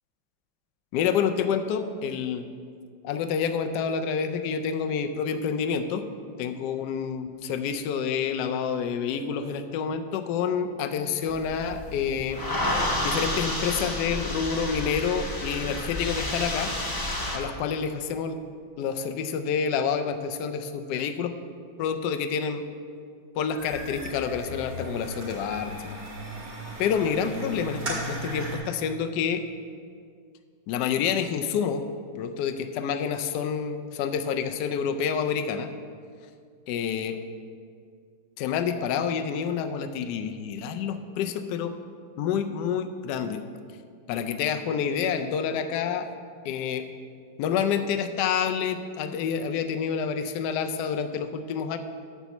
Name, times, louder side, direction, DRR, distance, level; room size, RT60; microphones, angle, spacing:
voice 1, 0.9-2.4 3.0-6.0 6.4-12.4 13.0-16.7 17.3-18.4 18.8-21.3 21.8-22.6 23.3-25.7 26.8-29.4 30.7-31.8 32.2-35.7 36.7-37.2 38.4-41.7 42.2-43.4 44.1-46.1 46.4-46.8 47.4-51.8, left 7 dB, 70° left, 8 dB, 1.1 m, -28 dB
sound 1, 11.3-17.4, left 1 dB, 30° left, 0.3 m, -30 dB
sound 2, 23.6-28.6, right 1 dB, 65° right, 2.7 m, -36 dB
8.4 x 4.6 x 7.0 m, 2.1 s
omnidirectional pair, 2.1 m